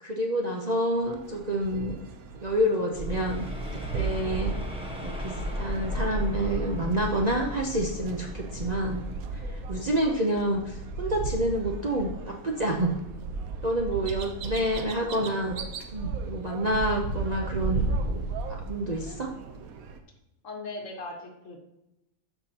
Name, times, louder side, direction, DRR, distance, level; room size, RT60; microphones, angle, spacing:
voice 1, 0.0-2.0 2.4-3.4 3.7-4.5 5.0-9.0 9.3-12.9 13.6-15.6 15.9-19.3, right 1 dB, 35° right, 0 dB, 0.7 m, -28 dB
sound 1, 0.9-20.0, right 4 dB, 80° right, 1.2 m, -36 dB
sound 2, 3.0-10.1, left 1 dB, 5° right, 1.1 m, -35 dB
voice 2, 13.9-14.6 20.4-21.6, left 2 dB, 60° left, 2 dB, 1.7 m, -40 dB
12.5 x 6.0 x 2.9 m, 0.91 s
omnidirectional pair, 1.5 m